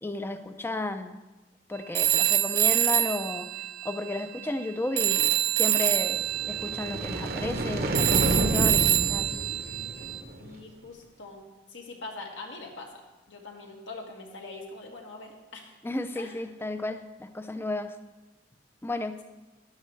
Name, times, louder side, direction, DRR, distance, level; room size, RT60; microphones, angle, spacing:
voice 1, 0.0-1.2 1.7-3.5 3.8-9.4 15.8-17.9 18.8-19.2, left 2 dB, 10° left, 9 dB, 0.4 m, -33 dB
Telephone, 1.9-4.7 5.0-10.2, right 13 dB, 80° right, 0.5 m, -26 dB
sound 1, 6.3-10.5, right 1 dB, 55° right, 0.8 m, -30 dB
voice 2, 10.4-11.4 11.7-15.8 16.2-16.4, left 3 dB, 80° left, 0 dB, 1.9 m, -43 dB
13.0 x 11.0 x 3.2 m, 1.1 s
head